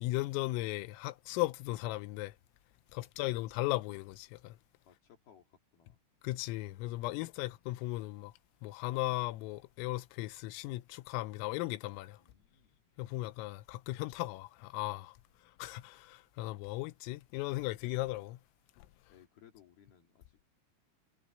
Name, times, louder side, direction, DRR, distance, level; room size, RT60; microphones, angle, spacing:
voice 1, 0.0-2.3 2.9-4.6 6.2-8.3 8.6-12.2 13.0-15.2 15.6-18.4, left 19 dB, 85° left, 3.4 m, -36 dB
voice 2, 4.8-6.0 12.2-12.8 15.5-15.7 19.1-20.4, left 9 dB, 55° left, 3.8 m, -63 dB
omnidirectional pair, 5.9 m